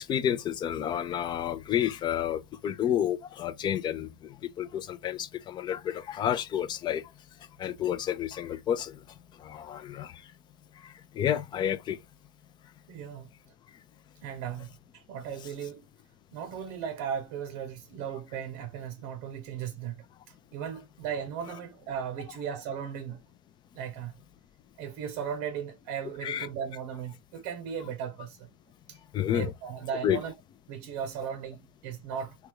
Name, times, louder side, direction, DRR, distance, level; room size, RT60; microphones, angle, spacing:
voice 1, 0.0-4.1 4.6-7.0 7.6-8.9 9.4-10.1 11.2-12.0 26.2-26.5 29.1-29.5 30.0-30.2, left 10 dB, 30° left, 0.5 m, -30 dB
voice 2, 12.9-13.3 14.2-15.9 16.3-23.2 23.7-24.1 24.8-28.5 28.9-29.0 29.3-30.3 30.7-32.4, right 8 dB, 55° right, 0.7 m, -37 dB
3.5 x 2.3 x 3.1 m
hypercardioid pair, 100°, 15 cm